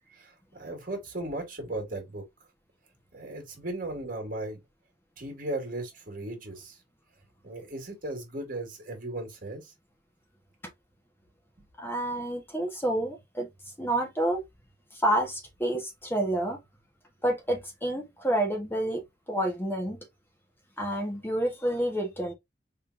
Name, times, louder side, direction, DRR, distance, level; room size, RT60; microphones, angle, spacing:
voice 1, 0.1-2.2 3.1-4.6 5.2-6.8 7.4-9.7, right 2 dB, 50° right, 2.1 m, -36 dB
voice 2, 11.8-13.5 13.8-14.4 14.9-16.6 17.2-19.0 19.3-20.0 20.8-22.3, right 1 dB, 15° left, 1.3 m, -29 dB
4.3 x 3.7 x 2.6 m
head